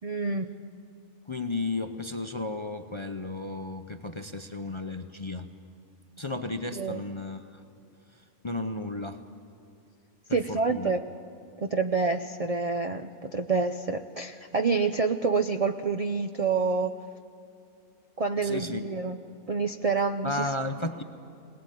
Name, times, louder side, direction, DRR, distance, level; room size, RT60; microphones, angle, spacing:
voice 1, 0.0-0.5 6.7-7.0 10.3-11.1 11.6-17.0 18.2-19.2 19.5-20.5, right 4 dB, 55° right, 7 dB, 0.4 m, -27 dB
voice 2, 1.3-5.5 6.2-7.6 8.4-9.2 10.3-10.9 18.4-18.8 20.2-21.0, left 2 dB, 30° left, 7 dB, 0.5 m, -33 dB
21.5 x 19.0 x 9.3 m, 2.5 s
omnidirectional pair, 1.5 m